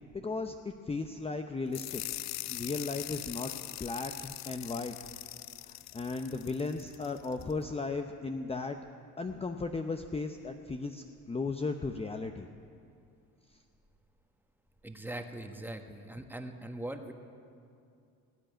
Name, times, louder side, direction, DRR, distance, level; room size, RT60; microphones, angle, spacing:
voice 1, 0.1-2.0 2.5-3.5 3.8-5.0 5.6-8.8 9.2-12.5, left 3 dB, 15° left, 6 dB, 0.7 m, -36 dB
sound 1, 1.7-7.5, left 15 dB, 50° left, 0.4 m, -42 dB
voice 2, 14.8-17.1, right 1 dB, 5° right, 5 dB, 1.4 m, -41 dB
17.5 x 9.0 x 8.8 m, 2.4 s
supercardioid pair, 85°, 35 cm